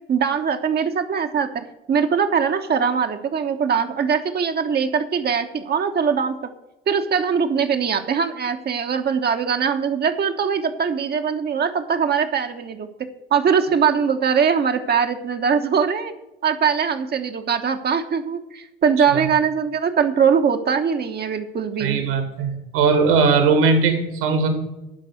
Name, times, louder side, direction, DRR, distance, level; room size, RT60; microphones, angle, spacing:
voice 1, 0.1-6.5 6.9-12.9 13.3-16.1 16.4-22.0, right 6 dB, 35° right, 6 dB, 1.2 m, -21 dB
voice 2, 21.8-24.5, right 4 dB, 65° right, 6 dB, 2.4 m, -19 dB
11.5 x 5.3 x 7.9 m, 0.97 s
figure-of-eight pair, 60°, 29 cm